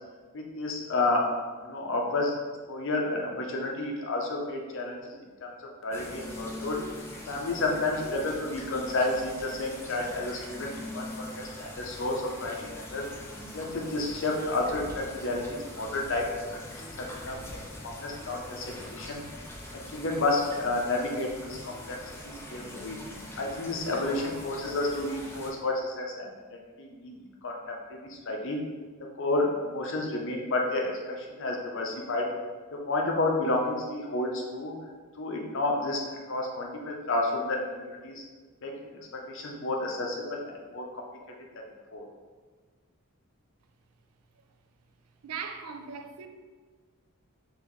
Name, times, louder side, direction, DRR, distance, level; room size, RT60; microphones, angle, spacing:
voice 1, 0.3-1.3 1.6-2.4 2.7-5.0 5.4-5.5 5.8-6.8 7.3-13.0 13.5-15.4 15.8-16.3 17.0-17.6 17.8-19.2 19.7-22.0 22.2-23.0 23.4-27.2 27.4-28.6 29.2-32.3 32.7-34.7 35.2-36.0 36.3-38.2 38.6-40.4 40.7-41.0 41.9-42.0, left 2 dB, 60° left, 0.6 m, -31 dB
sound 1, 5.9-25.5, left 1 dB, 10° left, 0.5 m, -42 dB
voice 2, 45.2-46.3, right 6 dB, 90° right, 0.4 m, -38 dB
4.1 x 3.0 x 3.0 m
head